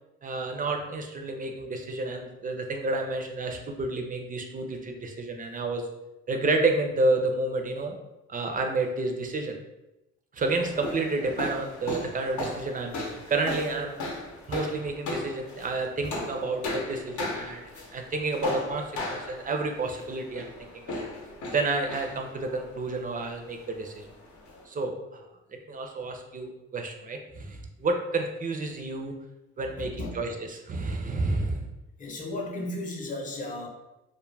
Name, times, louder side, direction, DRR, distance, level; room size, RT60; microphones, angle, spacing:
voice 1, 0.2-5.8 6.3-8.0 8.3-9.5 10.3-14.0 14.5-21.1 21.5-24.0 24.7-24.9 25.5-29.1 29.6-30.3 30.7-31.7, right 3 dB, 30° right, 3 dB, 0.4 m, -30 dB
sound 1, 10.4-24.6, left 2 dB, 75° left, 0.7 m, -37 dB
voice 2, 29.6-30.2 32.0-33.7, left 2 dB, 25° left, -2 dB, 0.6 m, -35 dB
2.2 x 2.1 x 3.1 m, 0.96 s
cardioid pair, 90°, 30 cm